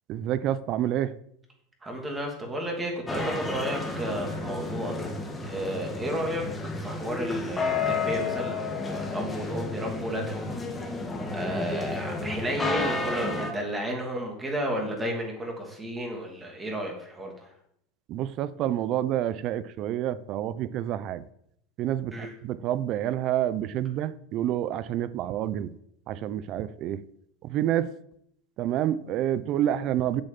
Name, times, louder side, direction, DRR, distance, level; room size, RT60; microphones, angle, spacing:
voice 1, 0.1-1.2 18.1-21.2 21.8-25.7 26.1-27.0 27.4-27.9 28.6-30.2, right 11 dB, 40° right, 0.6 m, -28 dB
voice 2, 1.8-5.1 5.5-6.4 6.7-10.6 10.9-11.1 11.3-17.5 22.1-22.3, equal, 10° right, 2.7 m, -32 dB
sound 1, 3.1-13.5, left 3 dB, 15° left, 1.4 m, -31 dB
8.1 x 6.6 x 7.4 m
supercardioid pair, 145°, 0 cm